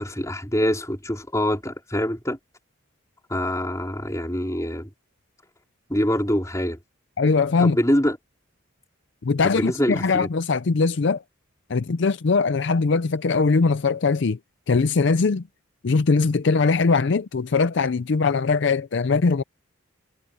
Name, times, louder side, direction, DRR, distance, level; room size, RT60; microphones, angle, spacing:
voice 1, 0.0-2.4 3.3-4.9 5.9-6.8 7.6-8.2 9.4-10.3, equal, 15° left, 4.4 m, -24 dB
voice 2, 7.2-7.8 9.2-11.2 11.7-14.4 14.7-15.4 15.8-19.4, left 4 dB, 60° left, 0.5 m, -21 dB
head